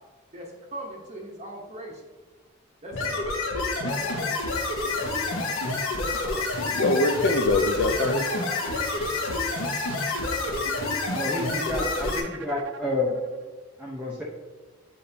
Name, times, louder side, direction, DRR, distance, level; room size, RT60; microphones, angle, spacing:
voice 1, 0.3-2.1 2.8-3.3 3.8-4.4 4.8-5.2 6.2-6.4, equal, 35° right, -1 dB, 1.0 m, -40 dB
sound 1, 2.9-12.2, left 2 dB, 80° left, 1.5 m, -28 dB
voice 2, 6.7-8.3, left 2 dB, 60° left, 4 dB, 0.5 m, -23 dB
sound 2, 7.2-13.4, right 5 dB, 65° right, 0.5 m, -43 dB
voice 3, 11.1-13.2 13.8-14.2, left 2 dB, 5° right, -5 dB, 0.9 m, -29 dB
8.8 x 5.1 x 2.8 m, 1.4 s
head